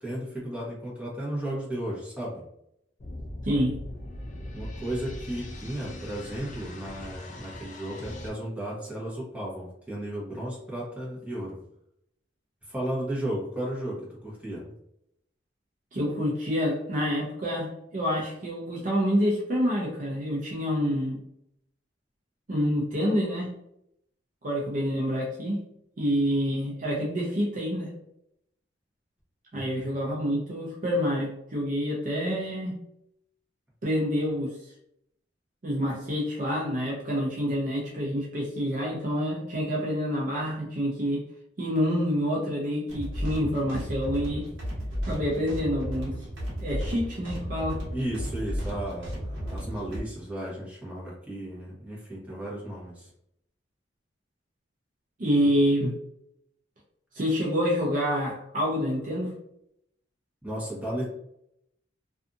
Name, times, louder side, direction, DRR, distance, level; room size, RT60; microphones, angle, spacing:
voice 1, 0.0-2.4 4.5-11.6 12.6-14.6 29.5-30.0 47.9-53.1 60.4-61.1, right 1 dB, 10° right, -6 dB, 1.0 m, -34 dB
sound 1, 3.0-8.3, left 1 dB, 40° left, 0.4 m, -40 dB
voice 2, 15.9-21.2 22.5-23.5 24.4-25.6 26.0-27.9 29.5-32.8 33.8-34.5 35.6-41.2 41.6-44.5 45.1-46.1 46.6-47.8 55.2-55.9 57.1-59.3, equal, 45° right, -3 dB, 0.6 m, -27 dB
sound 2, 42.9-50.0, equal, 80° right, 1.0 m, -34 dB
2.6 x 2.4 x 2.5 m, 0.77 s
head